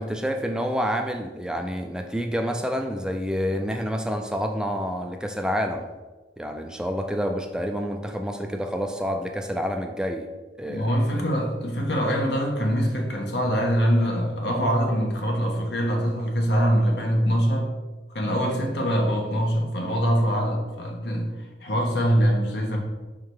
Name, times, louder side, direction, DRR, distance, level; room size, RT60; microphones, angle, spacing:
voice 1, 0.0-5.9 6.4-10.3 10.6-10.9, equal, 5° right, 4 dB, 0.3 m, -28 dB
voice 2, 10.7-17.7 18.1-22.8, equal, 70° left, 1 dB, 1.1 m, -23 dB
5.5 x 3.8 x 4.6 m, 1.2 s
head